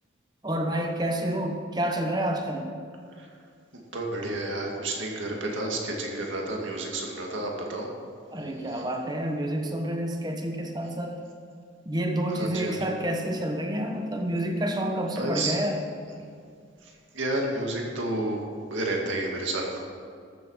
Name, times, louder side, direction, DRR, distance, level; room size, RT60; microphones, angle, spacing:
voice 1, 0.4-2.7 8.3-11.2 11.8-15.8, right 1 dB, 20° right, 2 dB, 1.1 m, -29 dB
voice 2, 3.9-7.9 8.7-8.8 12.3-13.0 15.2-15.6 16.8-18.4 18.7-19.8, right 2 dB, 80° right, 0 dB, 2.2 m, -31 dB
14.0 x 7.6 x 5.6 m, 2.2 s
head